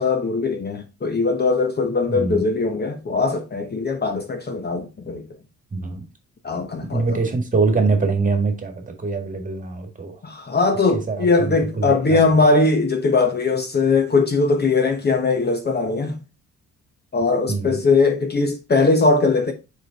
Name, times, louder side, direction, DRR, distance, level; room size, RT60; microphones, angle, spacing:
voice 1, 0.0-5.2 6.4-7.2 10.2-16.2 17.1-19.5, left 3 dB, 35° left, 1.0 m, -20 dB
voice 2, 2.1-2.4 5.7-6.0 6.9-10.1 11.1-12.2 17.5-17.8, right 4 dB, 25° right, 1.8 m, -23 dB
5.0 x 4.8 x 4.0 m
cardioid pair, 90°, 30 cm